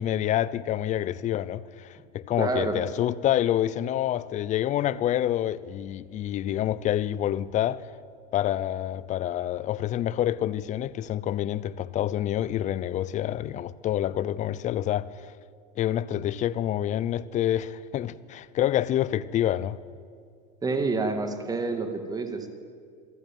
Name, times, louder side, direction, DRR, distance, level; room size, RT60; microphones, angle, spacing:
voice 1, 0.0-7.9 8.3-15.3 15.8-19.8, left 12 dB, 35° left, 0.7 m, -27 dB
voice 2, 2.4-2.8 20.6-22.5, right 3 dB, 20° right, 2.4 m, -28 dB
26.0 x 11.5 x 9.2 m
supercardioid pair, 105°, 20 cm